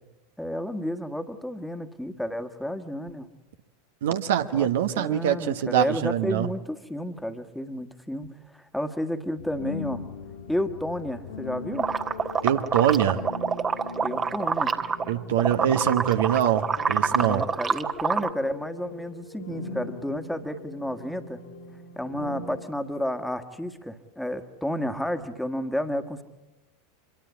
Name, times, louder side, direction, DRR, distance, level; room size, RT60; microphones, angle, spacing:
voice 1, 0.4-3.3 4.5-4.7 5.0-10.0 10.5-11.9 14.0-14.8 17.1-21.4 22.0-26.2, equal, 5° left, 7 dB, 1.7 m, -31 dB
voice 2, 4.0-6.5 12.4-13.2 15.1-17.4, right 10 dB, 60° right, 8 dB, 1.1 m, -24 dB
sound 1, 9.4-22.7, left 3 dB, 65° left, 3.5 m, -40 dB
sound 2, 11.8-15.1 15.4-18.3, right 6 dB, 25° right, 1.4 m, -26 dB
25.5 x 22.5 x 8.4 m, 0.96 s
figure-of-eight pair, 85°, 0 cm